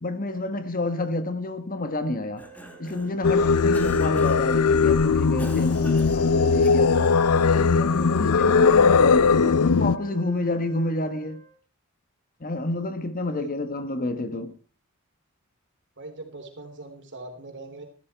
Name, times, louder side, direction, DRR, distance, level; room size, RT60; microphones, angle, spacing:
voice 1, 0.0-2.4 2.8-7.1 7.5-11.4 12.4-14.5, left 2 dB, 40° left, 1.2 m, -29 dB
sound 1, 1.8-11.5, right 8 dB, 40° right, 5.0 m, -50 dB
Cough, 2.2-3.2 3.7-4.6 5.4-7.1, equal, 5° left, 1.6 m, -42 dB
Singing, 3.2-10.0, left 5 dB, 85° left, 0.6 m, -19 dB
voice 2, 16.0-17.8, right 2 dB, 55° right, 3.8 m, -40 dB
14.0 x 13.0 x 4.5 m
head